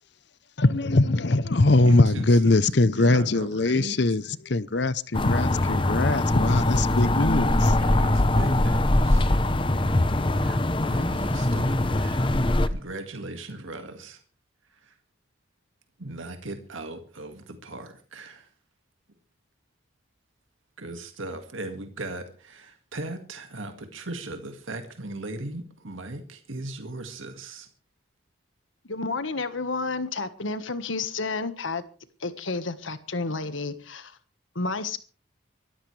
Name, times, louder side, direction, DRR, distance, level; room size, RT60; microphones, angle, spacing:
voice 1, 0.6-7.8, left 2 dB, 55° left, 0.7 m, -22 dB
voice 2, 1.7-2.6 2.9-4.0 7.8-9.3 10.3-12.4 12.7-14.2 14.7-15.0 16.0-18.5 20.8-27.7, right 2 dB, 80° right, 2.0 m, -38 dB
sound 1, 5.1-12.7, left 1 dB, 25° left, 0.8 m, -22 dB
voice 3, 28.9-31.8 32.2-34.2 34.5-35.0, left 3 dB, 75° left, 1.5 m, -30 dB
23.5 x 13.5 x 3.3 m
head